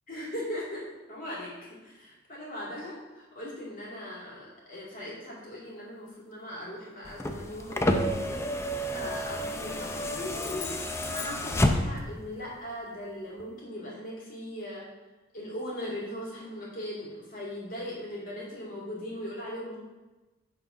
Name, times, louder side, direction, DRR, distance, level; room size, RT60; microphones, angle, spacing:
voice 1, 0.1-8.4 8.9-10.7 11.0-14.9 15.3-19.8, left 1 dB, 45° left, -6 dB, 2.4 m, -39 dB
sound 1, 7.1-12.2 13.4-13.5, left 1 dB, 15° left, 0.4 m, -29 dB
sound 2, 10.4-12.1, left 6 dB, 65° left, 0.8 m, -43 dB
7.9 x 4.1 x 5.0 m, 1.1 s
head